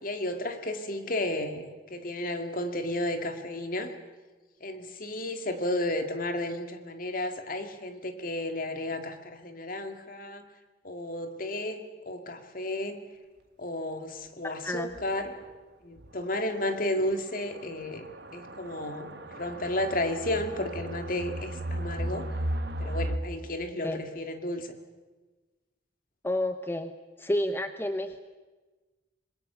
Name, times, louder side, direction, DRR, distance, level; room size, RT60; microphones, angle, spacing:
voice 1, 0.0-3.9 4.6-10.5 10.8-13.0 13.6-15.4 15.8-18.1 18.3-22.3 22.8-24.8, left 1 dB, 50° left, 7 dB, 2.2 m, -33 dB
voice 2, 14.4-14.9 23.8-24.0 26.2-26.9 27.2-28.2, left 1 dB, 15° left, 9 dB, 0.8 m, -30 dB
sound 1, 15.0-15.1 15.4-15.5 16.0-16.1 17.0-23.2, right 1 dB, 65° right, 1.3 m, -35 dB
26.5 x 21.5 x 6.9 m, 1.3 s
head